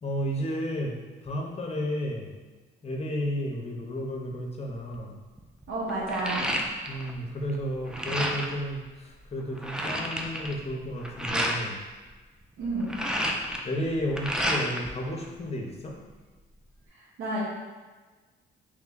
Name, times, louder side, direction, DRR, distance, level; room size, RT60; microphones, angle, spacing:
voice 1, 0.0-2.3 2.8-5.1 6.9-11.8 13.6-16.0, equal, 30° left, 0 dB, 0.8 m, -32 dB
sound 1, 4.7-5.0 5.4-7.1 7.4-8.6 9.1-9.2 9.4-11.6 12.6-14.9 15.2-16.1, equal, 5° right, 0.4 m, -31 dB
voice 2, 5.7-6.6 12.6-13.0 17.0-17.4, right 2 dB, 80° right, -6 dB, 0.8 m, -31 dB
3.2 x 3.1 x 3.8 m, 1.3 s
cardioid pair, 90°, 20 cm